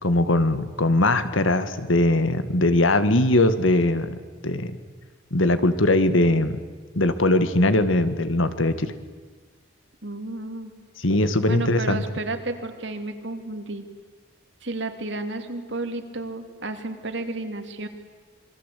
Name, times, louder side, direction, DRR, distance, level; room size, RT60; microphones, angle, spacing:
voice 1, 0.0-4.2 4.4-4.8 5.3-6.6 6.9-8.9 11.0-12.0, left 1 dB, 85° left, 11 dB, 1.8 m, -20 dB
voice 2, 10.0-10.7 11.5-13.9 14.6-17.9, right 2 dB, 65° right, 7 dB, 2.7 m, -32 dB
27.0 x 23.0 x 8.4 m, 1.4 s
head